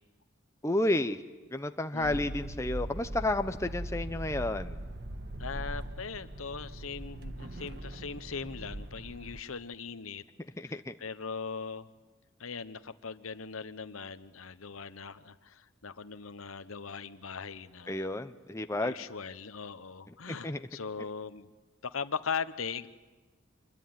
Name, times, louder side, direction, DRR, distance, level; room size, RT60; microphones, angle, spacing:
voice 1, 0.6-1.2 1.5-4.8 10.6-10.9 17.9-19.0 20.3-20.6, left 1 dB, 15° left, 8 dB, 0.8 m, -31 dB
voice 2, 1.9-2.2 5.4-10.2 10.6-11.9 12.4-18.0 18.8-21.5 21.8-22.9, left 5 dB, 85° left, 13 dB, 0.9 m, -40 dB
sound 1, 2.0-9.4, right 1 dB, 50° right, 1.5 m, -40 dB
26.0 x 22.0 x 9.4 m, 1.3 s
head